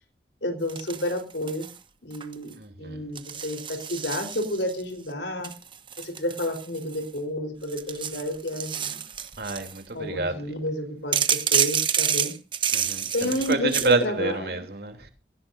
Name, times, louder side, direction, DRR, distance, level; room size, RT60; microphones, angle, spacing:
voice 1, 0.4-1.7 2.0-5.5 6.0-9.0 9.9-12.3 13.1-14.6, left 1 dB, 90° left, 4.0 m, -30 dB
sound 1, 0.7-1.8 2.1-2.5 3.2-4.8 5.4-7.2 7.6-9.8 11.1-13.9, right 8 dB, 30° right, 1.1 m, -28 dB
voice 2, 2.6-3.0 9.4-10.5 12.7-15.1, right 2 dB, 60° right, 3.2 m, -28 dB
20.0 x 16.5 x 2.7 m
head